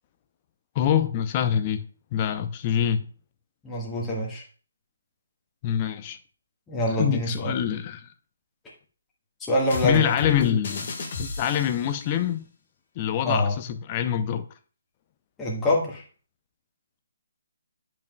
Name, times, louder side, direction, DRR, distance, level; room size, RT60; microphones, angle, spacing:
voice 1, 0.7-1.8 2.1-3.1 5.6-6.2 7.0-8.1 9.8-10.9 11.2-12.4 13.0-14.5, left 9 dB, 30° left, 0.6 m, -25 dB
voice 2, 3.6-4.4 6.7-7.5 9.5-10.1 13.2-13.5 15.4-16.0, left 1 dB, 10° left, 1.6 m, -25 dB
sound 1, 9.7-12.0, left 3 dB, 45° left, 1.6 m, -35 dB
10.5 x 5.3 x 2.3 m
figure-of-eight pair, 140°, 0 cm